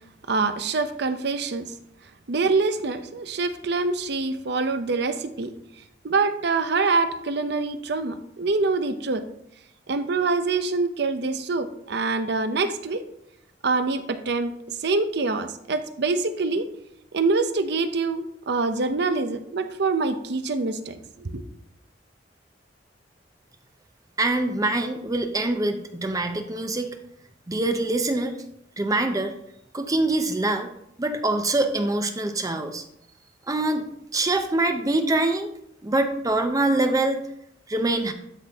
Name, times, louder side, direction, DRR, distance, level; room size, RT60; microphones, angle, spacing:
voice 1, 0.3-1.6 2.3-5.5 6.0-9.2 9.9-13.0 13.6-16.7 17.1-21.4, right 3 dB, 65° right, 10 dB, 0.7 m, -25 dB
voice 2, 24.2-26.9 27.5-28.3 28.8-29.3 29.7-30.7 31.0-32.8 33.5-33.9 34.1-35.5 35.8-37.2 37.7-38.1, right 2 dB, 20° right, 6 dB, 0.5 m, -24 dB
12.5 x 4.2 x 3.5 m, 0.76 s
head